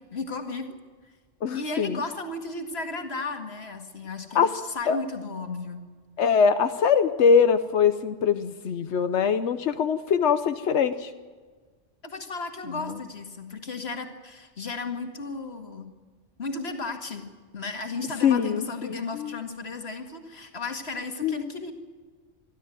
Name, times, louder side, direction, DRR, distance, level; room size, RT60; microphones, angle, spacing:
voice 1, 0.1-0.7 1.0-1.1 1.5-5.9 12.0-15.9 16.4-17.3 17.5-21.7, left 3 dB, 65° left, 5 dB, 2.2 m, -34 dB
voice 2, 1.4-2.0 4.3-4.5 4.9-5.0 6.2-11.1 18.2-19.4 21.2-21.4, left 6 dB, 90° left, 10 dB, 1.1 m, -22 dB
24.0 x 13.0 x 9.2 m, 1.4 s
omnidirectional pair, 1.1 m